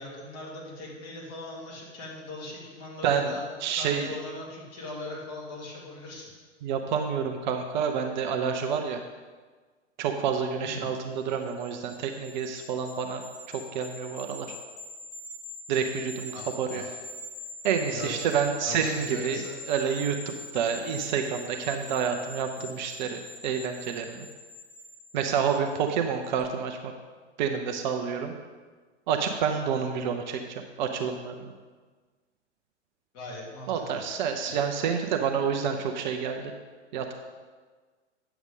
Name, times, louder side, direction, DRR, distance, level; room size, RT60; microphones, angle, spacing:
voice 1, 0.0-3.4 3.7-6.3 10.6-10.9 16.3-17.0 17.9-18.3 18.6-19.6 33.1-34.0, left 2 dB, 35° left, -4 dB, 2.7 m, -40 dB
voice 2, 3.6-4.1 6.6-9.0 10.0-14.6 15.7-16.8 17.6-19.4 19.7-24.3 25.1-26.9 27.4-28.3 29.1-31.5 33.7-36.5 36.9-37.2, right 7 dB, 40° right, 5 dB, 0.7 m, -29 dB
sound 1, 11.3-25.9 26.2-26.4, left 2 dB, 60° left, 1.7 m, -43 dB
9.4 x 7.0 x 3.6 m, 1.4 s
figure-of-eight pair, 110°, 36 cm